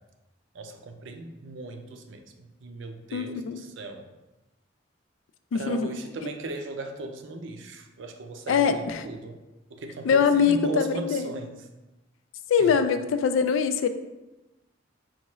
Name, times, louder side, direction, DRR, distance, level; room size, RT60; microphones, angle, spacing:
voice 1, 0.5-4.1 5.5-9.4 9.7-11.7 12.6-12.8, right 2 dB, 70° right, 6 dB, 0.5 m, -37 dB
voice 2, 3.1-3.6 5.5-5.9 8.5-9.0 10.0-11.3 12.5-13.9, left 6 dB, 80° left, 10 dB, 0.3 m, -23 dB
5.6 x 2.4 x 3.0 m, 1.1 s
head